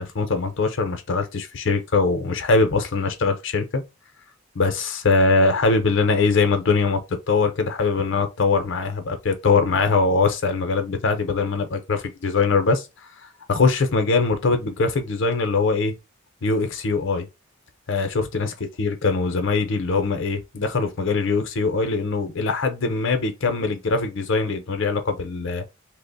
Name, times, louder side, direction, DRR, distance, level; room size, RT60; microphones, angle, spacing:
voice 1, 0.0-3.8 4.5-7.0 7.3-12.9 13.5-15.9 16.4-17.3 17.9-25.6, left 4 dB, 65° left, 0.7 m, -22 dB
2.9 x 2.1 x 3.9 m
head